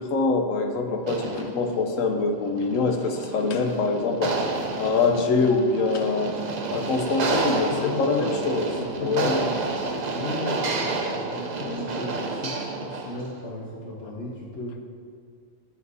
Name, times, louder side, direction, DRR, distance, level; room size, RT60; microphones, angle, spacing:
voice 1, 0.0-4.4 4.8-6.4 6.7-8.7 9.0-9.4 11.6-11.9, left 3 dB, 80° left, 4 dB, 1.1 m, -24 dB
sound 1, 1.0-13.4, right 3 dB, 45° right, 0.6 m, -30 dB
voice 2, 7.4-8.3 8.8-9.6 10.0-12.5 12.8-14.8, left 2 dB, 60° left, -5 dB, 1.3 m, -35 dB
11.0 x 7.0 x 2.7 m, 2.1 s
omnidirectional pair, 1.4 m